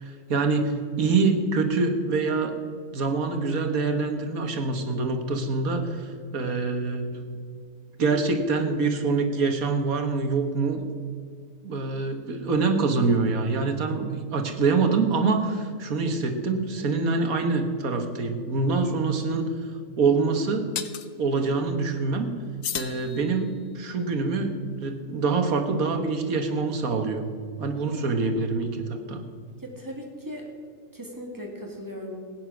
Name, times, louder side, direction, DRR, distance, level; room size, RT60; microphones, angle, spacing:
voice 1, 0.0-2.5 2.9-7.3 8.0-10.8 11.6-19.5 20.0-20.7 21.2-22.3 22.7-24.5 24.8-27.2 27.6-29.2, right 4 dB, 70° right, 5 dB, 1.8 m, -25 dB
sound 1, 18.8-18.9 20.8-21.1 22.6-23.7, left 10 dB, 80° left, 1.2 m, -34 dB
voice 2, 29.6-30.5 30.9-32.2, equal, 15° right, 0 dB, 2.2 m, -37 dB
16.0 x 9.5 x 6.1 m, 2.1 s
omnidirectional pair, 1.6 m